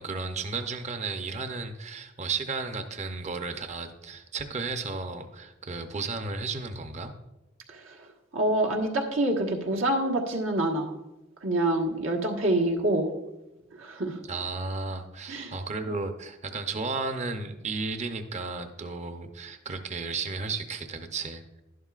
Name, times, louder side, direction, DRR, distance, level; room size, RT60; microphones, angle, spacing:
voice 1, 0.0-7.1 14.3-21.6, right 4 dB, 35° right, 7 dB, 0.7 m, -34 dB
voice 2, 7.7-10.9 11.4-13.1 13.7-14.2 15.3-15.5, right 1 dB, 80° right, 1 dB, 1.5 m, -27 dB
11.0 x 11.0 x 2.4 m, 0.98 s
head